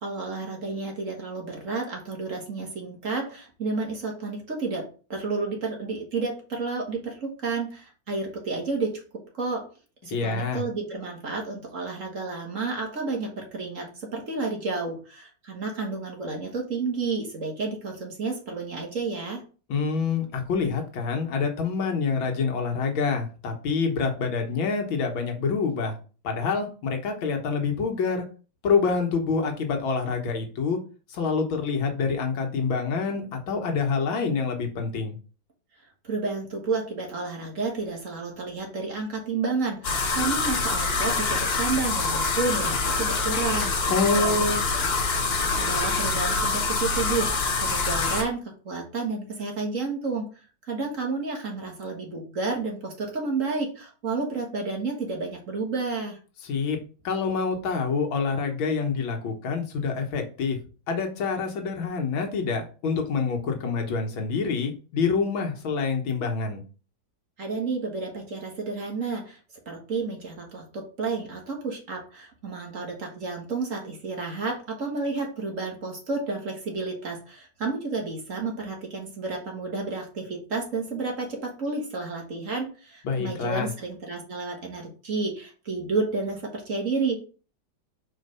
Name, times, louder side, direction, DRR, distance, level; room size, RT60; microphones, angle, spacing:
voice 1, 0.0-9.0 9.3-9.6 10.0-19.4 36.0-43.7 44.1-44.3 45.6-50.2 50.7-56.2 67.4-69.4 69.6-87.2, right 3 dB, 45° right, 1 dB, 1.7 m, -31 dB
voice 2, 10.1-10.7 19.7-26.0 26.2-28.2 28.6-30.8 31.1-35.2 43.9-44.6 56.4-56.8 57.0-60.6 60.9-66.6 83.0-83.7, left 5 dB, 90° left, 3 dB, 2.0 m, -26 dB
sound 1, 39.8-48.2, left 3 dB, 40° left, 0.9 m, -25 dB
4.6 x 4.4 x 5.4 m, 0.37 s
omnidirectional pair, 2.1 m